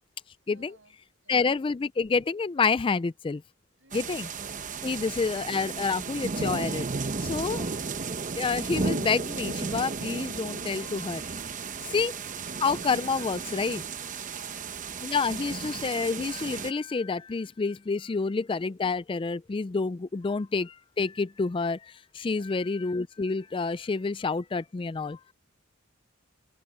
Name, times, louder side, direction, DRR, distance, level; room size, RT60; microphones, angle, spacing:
voice 1, 0.5-1.4 3.8-4.3 14.0-14.7 18.0-18.3 19.9-20.4 22.3-22.6, right 3 dB, 65° right, 8.0 m, -61 dB
voice 2, 1.3-3.4 3.9-4.3 4.8-6.9 7.2-7.6 8.4-11.4 11.9-12.1 12.6-13.8 15.0-25.2, left 4 dB, 25° left, 0.3 m, -28 dB
sound 1, 3.9-16.7, right 4 dB, 40° right, 0.9 m, -34 dB
open air
head